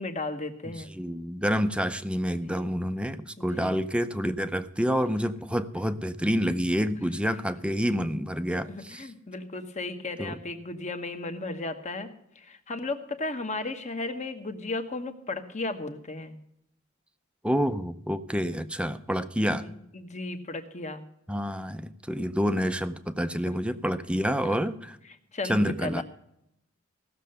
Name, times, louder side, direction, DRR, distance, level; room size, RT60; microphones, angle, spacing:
voice 1, 0.0-0.9 2.5-2.7 3.4-3.8 7.2-7.3 8.7-12.1 12.4-16.4 19.6-21.0 24.4-24.6 25.3-26.0, left 2 dB, 35° left, 7 dB, 1.1 m, -35 dB
voice 2, 0.7-9.1 10.2-10.3 17.4-19.7 21.3-25.0 25.5-26.0, equal, 5° right, 10 dB, 0.5 m, -28 dB
16.5 x 6.7 x 6.6 m, 0.77 s
head